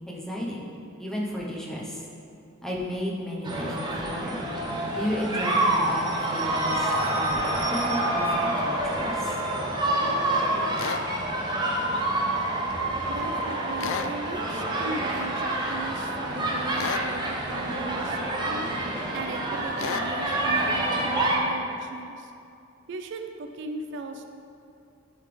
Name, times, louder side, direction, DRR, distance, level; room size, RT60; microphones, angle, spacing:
voice 1, 0.1-0.7 1.0-2.0 2.6-4.4 4.9-9.4, equal, ahead, -4 dB, 0.9 m, -33 dB
sound 1, 3.4-21.4, right 1 dB, 25° right, 0.8 m, -27 dB
sound 2, 10.8-11.0 13.8-14.1 16.8-17.1 19.8-20.1, left 7 dB, 70° left, 0.3 m, -31 dB
voice 2, 13.1-18.7 19.1-22.3 22.9-24.3, right 2 dB, 65° right, 6 dB, 0.4 m, -37 dB
11.0 x 4.0 x 3.3 m, 2.6 s
head